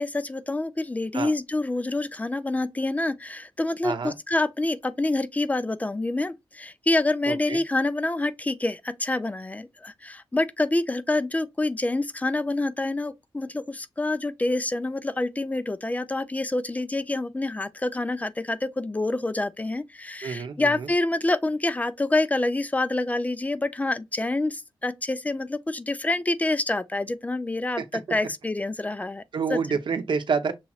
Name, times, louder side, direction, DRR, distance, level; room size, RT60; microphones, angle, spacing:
voice 1, 0.0-29.2 29.5-29.6, left 2 dB, 15° left, 0.4 m, -27 dB
voice 2, 3.8-4.2 7.3-7.6 20.2-20.9 27.8-27.9 29.3-30.5, right 5 dB, 70° right, 0.8 m, -28 dB
6.2 x 3.0 x 2.3 m
wide cardioid pair, 95°, 9 cm